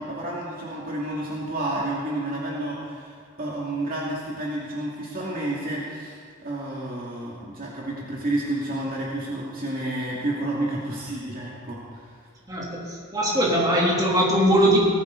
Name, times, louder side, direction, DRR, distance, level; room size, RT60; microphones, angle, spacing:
voice 1, 0.0-6.1 6.4-12.1, right 1 dB, 45° right, -5 dB, 2.5 m, -30 dB
voice 2, 12.5-14.8, equal, 20° right, -5 dB, 3.4 m, -21 dB
19.0 x 14.0 x 4.1 m, 2.2 s
head